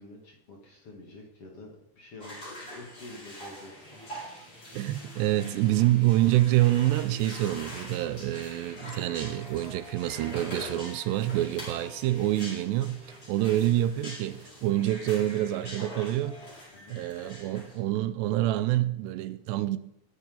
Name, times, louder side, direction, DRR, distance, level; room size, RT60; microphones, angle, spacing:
voice 1, 0.0-4.0 13.4-13.7 16.7-17.0, left 2 dB, 40° left, 2.5 m, -48 dB
sound 1, 2.2-17.8, left 1 dB, 20° left, 5.6 m, -44 dB
Guitar, 3.8-8.7, left 1 dB, 60° left, 8.3 m, -53 dB
voice 2, 4.7-16.4 16.9-19.8, right 14 dB, 85° right, 2.9 m, -27 dB
20.5 x 10.5 x 3.9 m
omnidirectional pair, 4.8 m